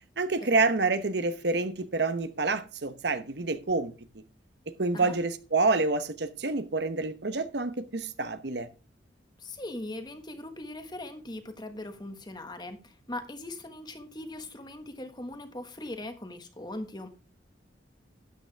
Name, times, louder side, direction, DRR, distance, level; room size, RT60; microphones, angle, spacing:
voice 1, 0.2-3.9 4.7-8.7, right 3 dB, 65° right, 1.0 m, -28 dB
voice 2, 9.4-17.1, left 1 dB, 25° left, 1.3 m, -40 dB
12.5 x 9.1 x 3.4 m
head